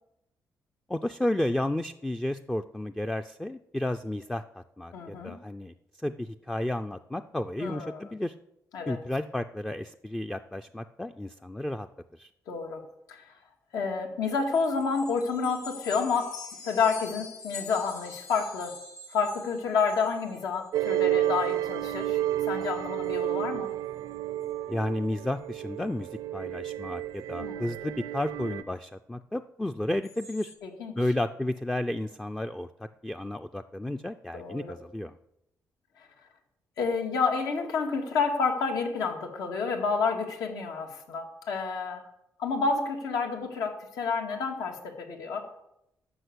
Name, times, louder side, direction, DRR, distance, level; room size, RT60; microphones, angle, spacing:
voice 1, 0.9-8.3 8.9-11.9 12.1-12.3 24.7-30.5 31.0-35.2, left 1 dB, 5° left, 7 dB, 0.3 m, -32 dB
voice 2, 4.9-5.4 7.6-8.0 8.7-9.0 12.5-12.8 13.1-13.2 13.7-16.4 16.6-18.7 19.1-22.2 22.5-23.7 27.4-27.7 30.6-30.9 34.3-34.7 36.8-42.0 42.4-45.4, left 5 dB, 90° left, 3 dB, 2.1 m, -29 dB
sound 1, 14.5-20.9 21.2-21.6 21.9-22.1 22.5-22.7 23.0-23.2 23.7-23.8 24.1-24.5 30.0-30.5, left 5 dB, 60° left, 2.5 m, -45 dB
sound 2, 20.7-28.6, right 13 dB, 90° right, 0.4 m, -31 dB
12.5 x 6.1 x 8.2 m, 0.82 s
cardioid pair, 150°, 6 cm